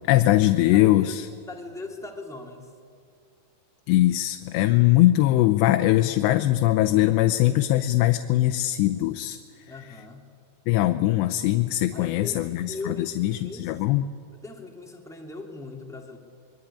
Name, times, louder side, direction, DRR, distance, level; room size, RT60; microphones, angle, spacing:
voice 1, 0.1-1.3 3.9-9.4 10.7-14.1, left 15 dB, 85° left, 7 dB, 3.0 m, -21 dB
voice 2, 0.7-2.7 9.7-10.3 11.9-14.0 14.3-16.2, left 3 dB, ahead, 1 dB, 1.3 m, -40 dB
25.5 x 23.0 x 9.9 m, 2.4 s
omnidirectional pair, 4.9 m